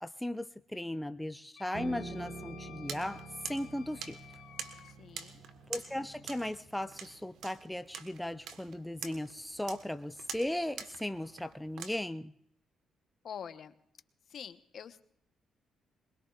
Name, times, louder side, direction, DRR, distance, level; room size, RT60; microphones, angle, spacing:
voice 1, 0.0-3.2 3.5-4.2 5.7-12.3, left 1 dB, 5° left, 10 dB, 0.5 m, -37 dB
Wind instrument woodwind instrument, 1.6-4.9, left 8 dB, 85° left, 1.9 m, -54 dB
Piano, 1.7-7.0, right 2 dB, 40° right, 6.1 m, -47 dB
sound 1, 2.9-11.9, right 7 dB, 80° right, 1.3 m, -47 dB
voice 2, 4.8-5.4 13.2-13.7 14.3-15.0, left 8 dB, 60° left, 10 dB, 1.0 m, -45 dB
23.0 x 21.5 x 2.4 m, 0.71 s
cardioid pair, 90°, 0 cm